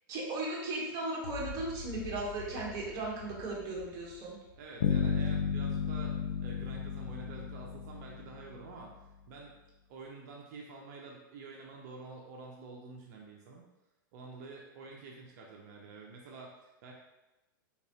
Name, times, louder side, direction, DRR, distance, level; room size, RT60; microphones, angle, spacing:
voice 1, 0.1-4.4, right 2 dB, 30° right, -4 dB, 1.1 m, -36 dB
sound 1, 1.2-5.6, left 5 dB, 55° left, 0.8 m, -47 dB
voice 2, 4.6-6.1 6.4-8.9 9.3-9.6 9.9-13.7 14.1-16.9, right 3 dB, 50° right, -1 dB, 0.6 m, -48 dB
sound 2, 4.8-8.8, left 6 dB, 80° left, 0.4 m, -33 dB
3.5 x 2.9 x 2.8 m, 1.0 s
hypercardioid pair, 140°, 11 cm